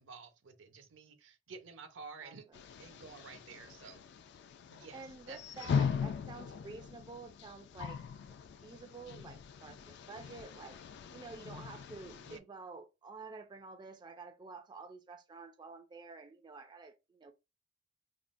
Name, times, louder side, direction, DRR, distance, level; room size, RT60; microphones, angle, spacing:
voice 1, 0.0-2.5 2.8-4.1 4.7-5.7 12.2-12.4, right 5 dB, 75° right, 0.6 m, -51 dB
voice 2, 2.2-2.6 4.9-8.0 8.3-10.8 11.1-17.3, right 4 dB, 25° right, 0.3 m, -50 dB
sound 1, 2.5-12.4, left 6 dB, 60° left, 0.3 m, -40 dB
3.6 x 2.0 x 2.5 m
head